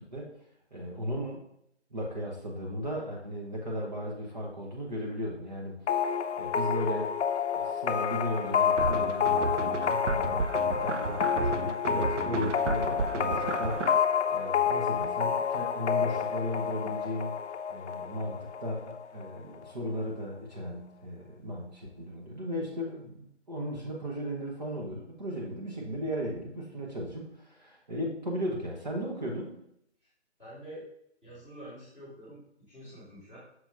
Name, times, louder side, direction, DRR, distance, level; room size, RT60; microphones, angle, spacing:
voice 1, 0.7-1.4 1.9-7.1 7.5-17.3 17.7-29.6, equal, 35° right, -3 dB, 1.0 m, -36 dB
sound 1, 5.9-19.4, left 7 dB, 70° left, 0.6 m, -29 dB
sound 2, 8.8-14.0, right 4 dB, 90° right, 0.7 m, -33 dB
voice 2, 30.4-30.8 31.2-32.4 32.7-33.4, right 1 dB, 5° right, -12 dB, 1.3 m, -47 dB
6.2 x 2.9 x 5.2 m, 0.75 s
hypercardioid pair, 175°, 35 cm